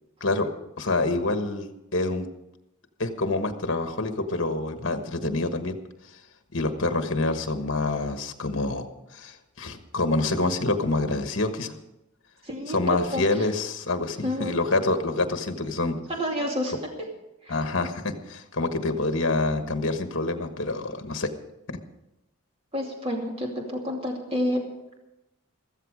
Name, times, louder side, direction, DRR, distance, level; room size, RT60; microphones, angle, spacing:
voice 1, 0.8-1.7 1.9-2.3 3.0-5.7 6.5-8.9 9.1-11.8 12.7-16.0 17.5-21.3, left 2 dB, 55° left, 7 dB, 1.3 m, -26 dB
voice 2, 12.4-13.5 14.2-14.6 16.1-16.7 17.0-17.1 17.4-17.5 22.7-24.6, equal, 25° right, 0 dB, 2.5 m, -29 dB
14.5 x 14.5 x 4.9 m, 0.93 s
head